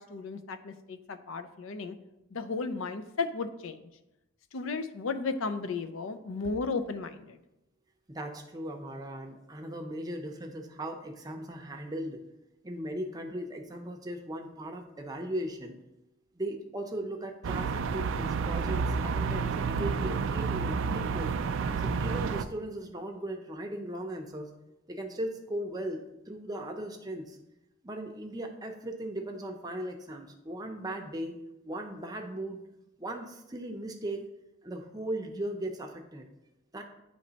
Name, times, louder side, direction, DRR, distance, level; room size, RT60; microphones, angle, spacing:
voice 1, 0.0-2.0 2.3-3.9 4.5-7.4, left 4 dB, 70° left, 10 dB, 0.5 m, -34 dB
voice 2, 8.1-12.2 12.6-15.8 16.4-21.3 21.8-24.5 24.9-27.4 27.8-31.3 31.6-32.6 33.0-34.2 34.6-36.3 36.7-36.8, right 1 dB, 20° right, 3 dB, 0.6 m, -38 dB
sound 1, 17.4-22.4, right 5 dB, 65° right, 0.3 m, -30 dB
9.3 x 3.2 x 4.0 m, 0.92 s
head